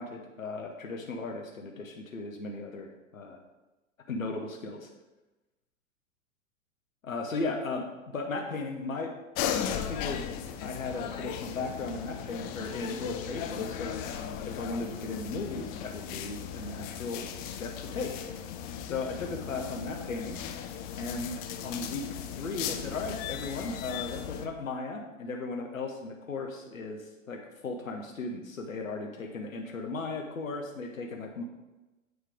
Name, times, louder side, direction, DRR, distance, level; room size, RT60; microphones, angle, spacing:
voice 1, 0.0-3.4 4.1-4.9 7.0-7.8 8.1-9.1 9.4-10.2 10.6-14.2 14.4-18.2 18.8-20.4 21.0-31.4, left 3 dB, 90° left, 2 dB, 0.9 m, -36 dB
sound 1, 9.3-24.5, left 9 dB, 25° left, 0.3 m, -37 dB
8.1 x 3.2 x 5.0 m, 1.1 s
hypercardioid pair, 95°, 39 cm